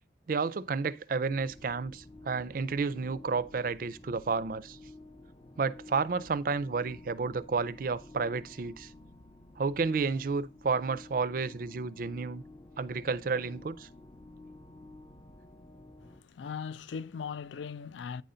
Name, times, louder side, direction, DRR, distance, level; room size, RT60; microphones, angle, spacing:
voice 1, 0.3-4.8 5.6-8.9 9.6-12.4 12.8-13.9, right 4 dB, 50° right, 0.4 m, -31 dB
sound 1, 1.3-16.2, left 2 dB, 20° left, 0.6 m, -52 dB
voice 2, 16.0-18.2, left 6 dB, 85° left, 0.4 m, -39 dB
9.2 x 3.8 x 5.5 m
head